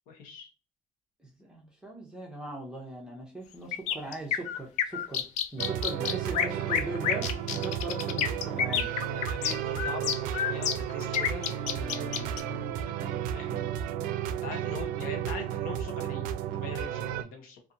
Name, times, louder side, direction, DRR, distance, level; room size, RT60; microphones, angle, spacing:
voice 1, 0.1-0.5 9.1-13.0 13.3-13.7 14.3-17.6, left 4 dB, 85° left, 4 dB, 0.9 m, -43 dB
voice 2, 1.2-5.2 5.5-8.9, right 2 dB, 5° right, -2 dB, 0.5 m, -39 dB
sound 1, 3.7-12.4, left 8 dB, 60° left, 0.4 m, -29 dB
sound 2, 5.6-17.2, right 10 dB, 90° right, 0.4 m, -33 dB
2.7 x 2.5 x 2.5 m, 0.34 s
cardioid pair, 170°, 14 cm